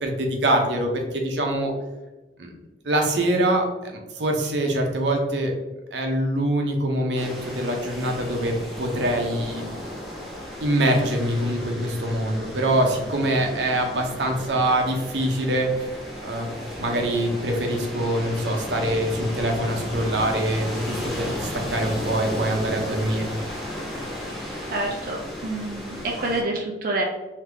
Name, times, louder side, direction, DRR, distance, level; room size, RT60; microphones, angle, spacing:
voice 1, 0.0-1.7 2.4-2.5 2.8-5.5 5.9-9.8 10.6-15.9 16.2-16.5 16.8-23.3, right 1 dB, 80° right, 2 dB, 0.7 m, -24 dB
sound 1, 7.2-26.4, left 1 dB, ahead, 0.7 m, -34 dB
voice 2, 24.7-27.0, right 2 dB, 50° right, 0 dB, 0.4 m, -28 dB
3.7 x 2.7 x 3.3 m, 1.1 s
head